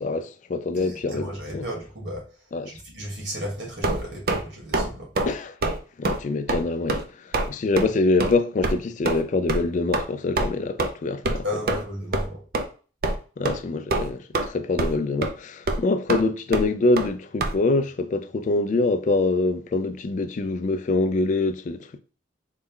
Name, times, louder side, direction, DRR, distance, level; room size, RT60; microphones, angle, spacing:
voice 1, 0.0-1.6 2.5-2.7 5.3-5.5 6.0-7.0 7.5-11.4 13.4-22.0, left 3 dB, 40° left, 0.3 m, -25 dB
voice 2, 0.8-5.1 11.4-12.4, equal, 85° right, 1.8 m, -34 dB
sound 1, 3.8-4.4 4.7-4.9 5.1-5.3 5.6-5.8 6.0-6.2 6.5-6.6 6.9-7.0 7.3-7.5 7.8-7.9 8.2-8.3 8.6-8.7 9.0-9.2 9.5-9.6 9.9-10.0 10.4-10.5 10.8-10.9 11.2-11.4 11.7-11.8 12.1-12.3 12.5-12.6 13.0-13.2 13.4-13.6 13.9-14.5 14.8-15.0 15.2-15.3 15.7-15.8 16.1-16.2 16.5-16.6 17.0-17.1 17.4-17.5, right 2 dB, 55° right, 0.5 m, -24 dB
4.0 x 2.2 x 3.6 m
head